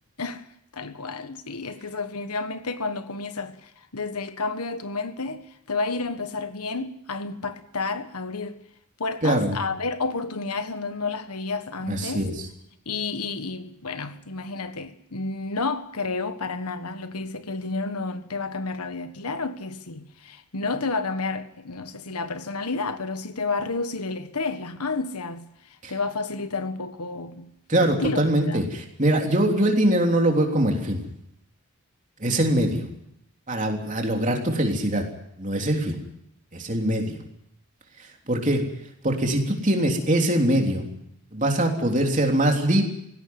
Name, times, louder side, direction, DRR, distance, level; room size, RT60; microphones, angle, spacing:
voice 1, 0.7-8.6 9.0-12.2 12.8-25.5 25.9-28.7, left 3 dB, 90° left, 1.5 m, -31 dB
voice 2, 9.2-9.6 11.9-12.4 25.8-25.9 27.7-31.0 32.2-32.8 33.5-35.0 35.4-36.0 36.5-37.2 38.3-38.6 39.0-40.9 41.3-42.8, right 1 dB, 35° right, 3.4 m, -22 dB
19.0 x 16.5 x 9.5 m
head